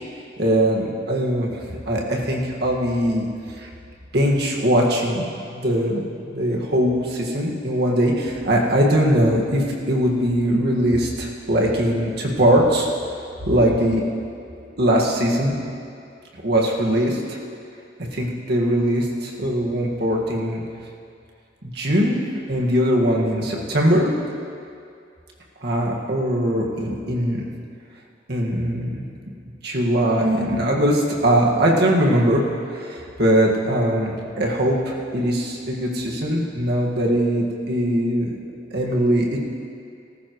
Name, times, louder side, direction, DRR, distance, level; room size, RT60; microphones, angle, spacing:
voice 1, 0.4-3.7 4.1-6.0 6.3-12.9 13.5-14.0 14.8-15.5 16.4-17.4 18.1-20.6 21.6-22.2 22.5-24.1 25.6-27.4 28.3-29.0 29.6-32.4 32.7-38.3 38.7-39.4, equal, 60° right, -2 dB, 1.9 m, -21 dB
18.0 x 14.5 x 3.2 m, 2.4 s
head